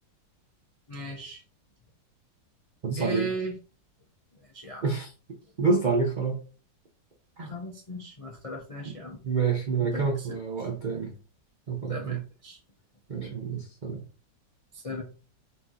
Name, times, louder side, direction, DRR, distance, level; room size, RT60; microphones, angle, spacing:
voice 1, 0.9-1.4 3.0-3.6 4.5-4.8 7.5-9.2 9.8-10.4 11.9-12.6 14.7-15.0, right 1 dB, 45° left, -1 dB, 0.4 m, -36 dB
voice 2, 2.8-3.3 4.8-5.1 5.6-6.4 7.4-7.5 9.2-11.1 11.7-12.2 13.1-14.0, right 5 dB, 60° right, 0 dB, 0.5 m, -28 dB
4.4 x 2.9 x 3.8 m, 0.35 s
omnidirectional pair, 2.0 m